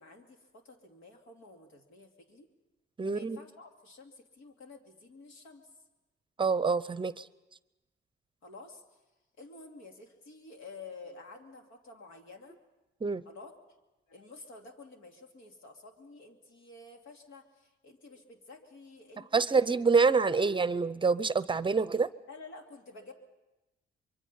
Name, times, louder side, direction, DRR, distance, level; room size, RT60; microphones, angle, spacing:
voice 1, 0.0-2.5 3.0-5.7 8.4-9.0 9.4-12.6 13.2-13.5 14.1-19.8 22.3-23.1, left 3 dB, 85° left, 3 dB, 2.7 m, -51 dB
voice 2, 3.0-3.4 6.4-7.3 13.0-13.2 19.3-22.1, right 4 dB, 25° right, 16 dB, 0.6 m, -26 dB
25.0 x 23.0 x 5.6 m, 1.0 s
cardioid pair, 90°, 20 cm